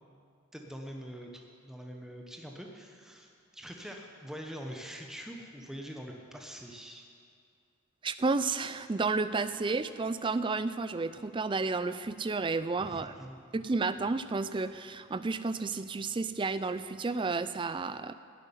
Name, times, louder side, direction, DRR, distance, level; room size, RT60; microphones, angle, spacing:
voice 1, 0.5-7.0 12.8-13.4, equal, ahead, 1 dB, 0.9 m, -44 dB
voice 2, 8.0-13.2 13.5-18.1, right 3 dB, 20° right, 13 dB, 0.3 m, -31 dB
11.0 x 8.3 x 9.8 m, 2.3 s
head